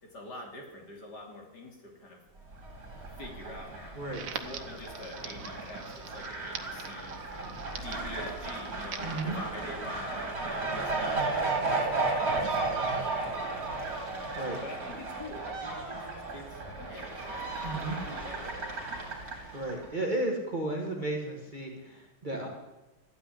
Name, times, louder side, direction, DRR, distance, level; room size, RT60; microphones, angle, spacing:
voice 1, 0.0-2.2 3.2-7.5 7.8-14.0 14.6-18.7, left 1 dB, 60° left, 1 dB, 3.4 m, -45 dB
Fowl, 2.5-19.9, right 3 dB, 50° right, 3.3 m, -34 dB
Crackle, 4.1-9.2, right 7 dB, 80° right, 1.7 m, -44 dB
voice 2, 9.0-9.3 14.4-14.6 17.6-18.0 19.5-22.5, right 2 dB, 25° right, 0 dB, 1.8 m, -33 dB
13.5 x 9.0 x 10.0 m, 1.1 s
omnidirectional pair, 2.1 m